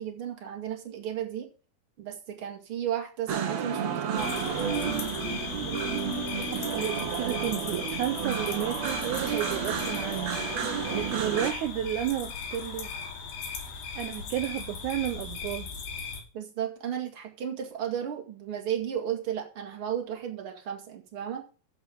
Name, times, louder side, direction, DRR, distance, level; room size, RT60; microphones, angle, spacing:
voice 1, 0.0-1.5 2.0-4.5 16.3-21.4, right 9 dB, 45° right, 2.5 m, -34 dB
sound 1, 3.3-11.5, right 7 dB, 60° right, 2.1 m, -31 dB
sound 2, 4.2-16.2, left 5 dB, 75° left, 3.7 m, -37 dB
voice 2, 6.5-12.9 13.9-15.7, right 12 dB, 75° right, 1.9 m, -32 dB
11.0 x 8.0 x 5.1 m
omnidirectional pair, 4.1 m